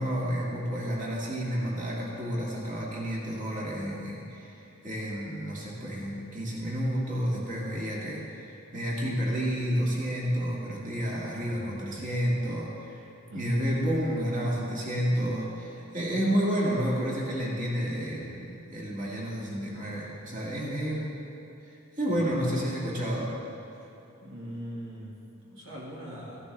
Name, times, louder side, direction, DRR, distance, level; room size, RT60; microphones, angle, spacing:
voice 1, 0.0-13.0 13.3-21.2 21.7-23.3, equal, 35° right, -4 dB, 2.0 m, -30 dB
voice 2, 13.3-13.7 22.1-22.4 24.2-26.5, equal, 60° right, -5 dB, 1.7 m, -41 dB
15.0 x 11.0 x 3.3 m, 2.9 s
head